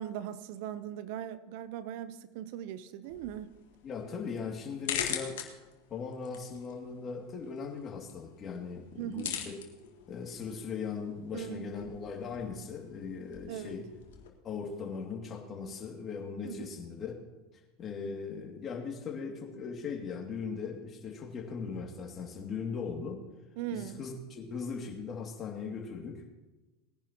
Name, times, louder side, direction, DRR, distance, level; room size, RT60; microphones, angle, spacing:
voice 1, 0.0-3.5 9.0-9.4 11.3-11.7 13.5-13.7 16.4-16.7 23.6-24.0, right 11 dB, 65° right, 14 dB, 0.6 m, -39 dB
sound 1, 3.0-14.3, left 9 dB, 75° left, 1.8 m, -43 dB
voice 2, 3.8-5.4 5.9-9.5 10.1-13.9 14.4-17.2 17.8-23.2 23.7-26.2, left 5 dB, 35° left, 1 dB, 2.4 m, -39 dB
20.0 x 10.5 x 3.0 m, 1.1 s
hypercardioid pair, 90°, 0 cm